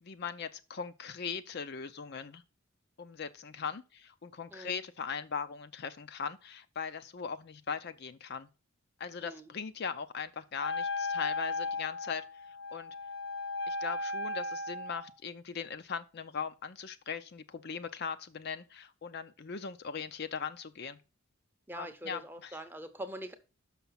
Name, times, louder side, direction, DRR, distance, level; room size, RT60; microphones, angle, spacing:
voice 1, 0.0-2.4 3.0-8.5 9.0-12.9 13.7-21.0 21.7-22.6, left 6 dB, 50° left, 0.5 m, -40 dB
Wind instrument woodwind instrument, 10.6-15.1, left 2 dB, 70° left, 0.9 m, -36 dB
voice 2, 21.7-23.3, right 1 dB, 10° right, 0.7 m, -43 dB
6.0 x 5.8 x 5.6 m
head